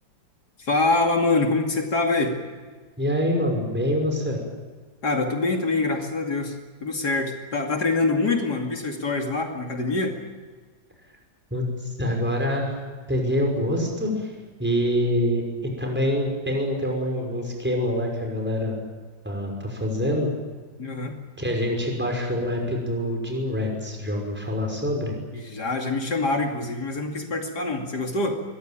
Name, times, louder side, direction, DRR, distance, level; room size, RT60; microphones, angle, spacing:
voice 1, 0.6-2.4 5.0-10.2 20.8-21.2 25.3-28.4, left 3 dB, 60° left, 3 dB, 3.1 m, -25 dB
voice 2, 3.0-4.4 11.5-12.8 13.1-14.3 14.6-18.8 19.2-20.3 21.4-25.1, equal, 5° right, 1 dB, 5.7 m, -25 dB
24.5 x 21.5 x 9.1 m, 1.4 s
omnidirectional pair, 1.9 m